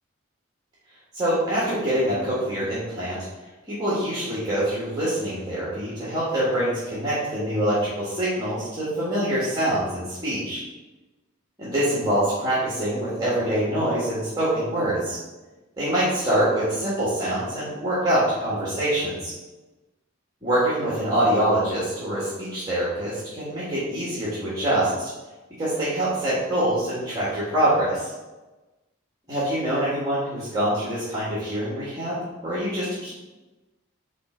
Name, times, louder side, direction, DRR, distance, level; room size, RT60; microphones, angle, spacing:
voice 1, 1.1-3.2 3.7-10.6 11.6-15.2 15.8-19.3 20.4-25.1 25.6-28.1 29.3-32.2 32.4-33.1, right 1 dB, 20° right, -9 dB, 1.6 m, -25 dB
5.8 x 3.9 x 4.4 m, 1.1 s
head